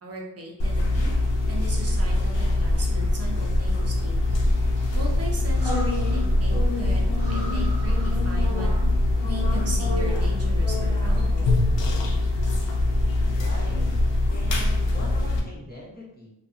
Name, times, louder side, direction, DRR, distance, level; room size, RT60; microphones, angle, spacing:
voice 1, 0.0-1.1 1.5-4.2 4.9-8.7 9.2-11.6, right 1 dB, 35° right, -1 dB, 0.7 m, -38 dB
sound 1, 0.6-15.4, left 2 dB, 85° left, 0.5 m, -23 dB
Breathing, 4.3-6.5 6.8-6.9 7.1-8.8, equal, 70° right, 1.0 m, -41 dB
voice 2, 13.3-13.9 14.3-16.3, equal, 20° left, -7 dB, 1.1 m, -41 dB
2.7 x 2.2 x 2.5 m, 0.86 s
wide cardioid pair, 70°, 42 cm